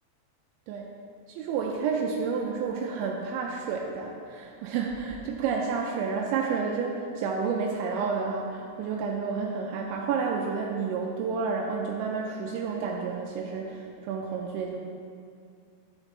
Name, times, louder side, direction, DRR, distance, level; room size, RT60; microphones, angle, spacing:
voice 1, 1.3-14.8, right 5 dB, 85° right, 0 dB, 2.8 m, -30 dB
11.0 x 4.9 x 3.1 m, 2.3 s
omnidirectional pair, 5.3 m